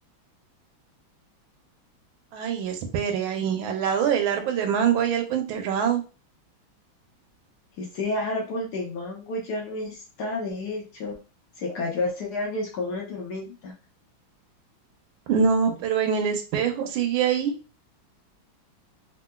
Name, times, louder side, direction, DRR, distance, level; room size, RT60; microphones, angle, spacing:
voice 1, 2.3-6.0 15.3-17.5, right 7 dB, 80° right, 5 dB, 1.4 m, -24 dB
voice 2, 7.8-11.2 11.6-13.7, left 2 dB, 65° left, -1 dB, 1.2 m, -31 dB
3.7 x 2.4 x 2.3 m, 0.34 s
omnidirectional pair, 2.2 m